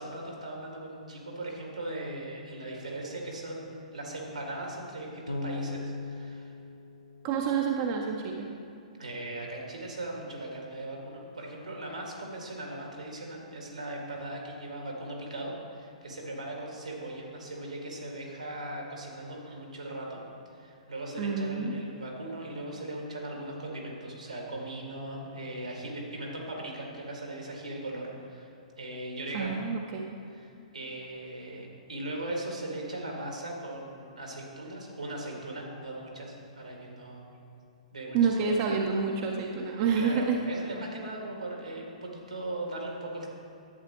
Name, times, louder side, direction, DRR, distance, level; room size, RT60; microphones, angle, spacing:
voice 1, 0.0-6.5 9.0-20.2 20.5-28.5 28.8-29.6 30.3-37.3 37.9-38.5 40.0-43.3, right 1 dB, 80° right, -1 dB, 1.9 m, -39 dB
Bass guitar, 5.3-8.3, left 3 dB, 85° left, 0.8 m, -39 dB
voice 2, 7.2-8.5 21.2-21.8 29.3-30.1 38.1-40.4, right 5 dB, 35° right, 1 dB, 0.6 m, -28 dB
11.0 x 8.2 x 3.0 m, 2.7 s
figure-of-eight pair, 115°, 4 cm